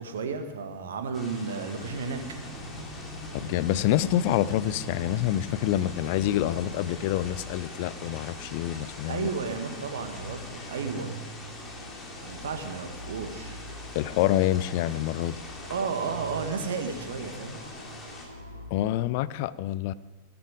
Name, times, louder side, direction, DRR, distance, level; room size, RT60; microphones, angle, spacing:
voice 1, 0.0-2.2 9.1-11.1 12.2-13.6 15.7-17.6, right 5 dB, 65° right, 6 dB, 1.6 m, -33 dB
sound 1, 1.1-18.3, left 2 dB, 20° left, 3.0 m, -44 dB
sound 2, 1.7-6.9, left 1 dB, 85° left, 3.8 m, -42 dB
sound 3, 2.3-18.7, right 1 dB, 90° right, 1.3 m, -44 dB
voice 2, 3.3-9.3 13.9-15.4 18.7-19.9, left 13 dB, 50° left, 17 dB, 0.5 m, -27 dB
17.0 x 12.0 x 5.2 m, 1.4 s
figure-of-eight pair, 90°, 0 cm